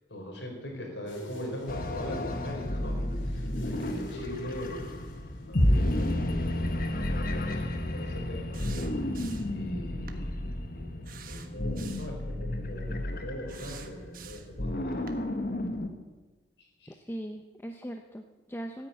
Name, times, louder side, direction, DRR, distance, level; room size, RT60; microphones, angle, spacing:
voice 1, 0.1-3.0 3.3-4.9 5.5-8.6 9.5-10.3 10.7-15.4 16.8-16.9, left 1 dB, 70° left, 1 dB, 4.6 m, -41 dB
sound 1, 1.1-6.2, equal, 90° left, 3.4 m, -45 dB
sound 2, 1.7-15.9, left 1 dB, 50° left, 1.4 m, -31 dB
sound 3, 8.5-9.6 10.1-10.2 11.0-12.2 13.5-14.6 15.1-15.2, right 8 dB, 50° right, 1.3 m, -48 dB
voice 2, 16.9-18.9, right 1 dB, 10° left, 4 dB, 0.7 m, -40 dB
15.0 x 9.7 x 9.4 m, 1.2 s
head